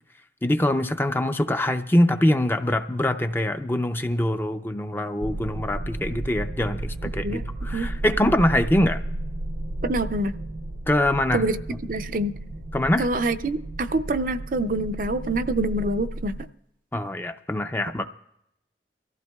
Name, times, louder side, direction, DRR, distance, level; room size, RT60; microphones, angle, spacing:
voice 1, 0.4-9.0 10.9-11.4 12.7-13.1 16.9-18.1, left 1 dB, 10° left, 8 dB, 0.4 m, -23 dB
sound 1, 5.2-16.5, right 1 dB, 85° right, 0.8 m, -33 dB
voice 2, 9.8-10.3 11.3-11.6 11.8-12.3 13.0-16.3, right 2 dB, 45° right, 9 dB, 0.5 m, -26 dB
24.0 x 15.0 x 2.3 m, 0.79 s
head